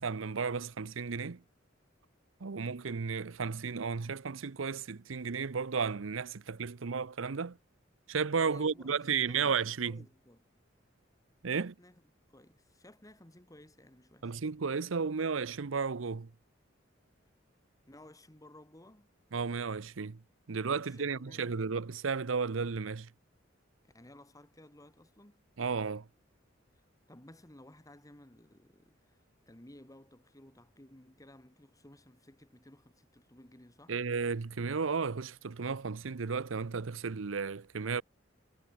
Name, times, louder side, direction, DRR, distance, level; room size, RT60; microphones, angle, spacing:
voice 1, 0.0-1.4 2.4-7.6 8.1-10.0 11.4-11.7 14.2-16.3 19.3-20.2 20.5-23.1 25.6-26.1 33.9-38.0, right 5 dB, 90° right, 0.7 m, -33 dB
voice 2, 8.4-10.4 11.6-12.0 12.3-14.4 17.9-19.1 20.8-21.7 23.9-25.4 27.1-29.2 29.5-34.0, left 1 dB, 20° left, 2.2 m, -56 dB
head